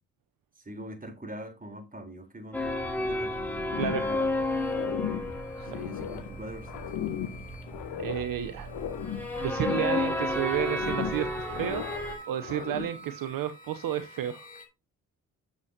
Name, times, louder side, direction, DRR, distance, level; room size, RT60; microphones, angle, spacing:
voice 1, 0.7-4.2 5.7-6.8, right 1 dB, 20° right, 3.8 m, -43 dB
sound 1, 2.5-12.2, left 1 dB, 5° left, 3.6 m, -32 dB
sound 2, 3.7-4.4 4.7-6.3 6.7-8.3 8.7-10.3 10.5-12.1 12.4-13.0, left 10 dB, 70° left, 1.3 m, -36 dB
voice 2, 3.8-4.1 5.6-5.8 8.0-8.7 9.4-11.9 12.3-14.5, right 11 dB, 60° right, 0.8 m, -32 dB
sound 3, 4.0-14.7, equal, 20° left, 2.9 m, -49 dB
9.5 x 7.3 x 2.8 m
hypercardioid pair, 40°, 38 cm